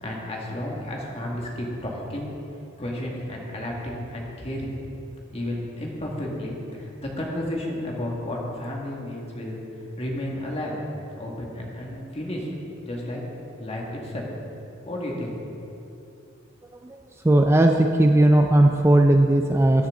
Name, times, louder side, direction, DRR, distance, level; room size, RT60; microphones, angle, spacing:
voice 1, 0.0-2.3 2.8-4.7 5.3-9.6 10.0-10.8 11.2-12.5 12.8-13.2 13.6-14.3 14.9-15.4, left 1 dB, 30° left, -2 dB, 2.0 m, -32 dB
voice 2, 17.2-19.9, right 1 dB, 10° right, 4 dB, 0.4 m, -17 dB
14.0 x 10.5 x 3.8 m, 2.8 s
head